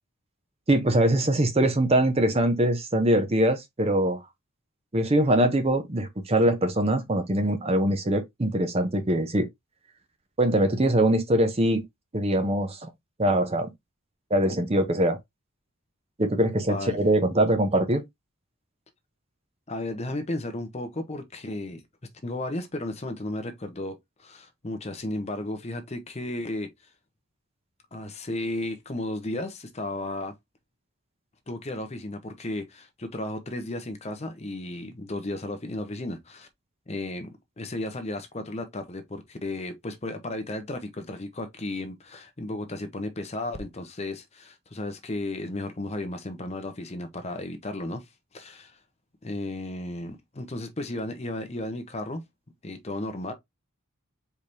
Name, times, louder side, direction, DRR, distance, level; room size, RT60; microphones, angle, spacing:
voice 1, 0.7-4.2 4.9-9.5 10.4-11.8 12.1-12.9 13.2-13.7 14.3-15.2 16.2-18.0, right 1 dB, 25° right, 0.7 m, -23 dB
voice 2, 19.7-21.8 22.2-26.7 27.9-30.3 31.5-36.5 36.9-48.1 48.3-48.8 49.2-52.2 52.6-53.3, left 1 dB, 30° left, 0.7 m, -34 dB
4.6 x 3.3 x 2.6 m
head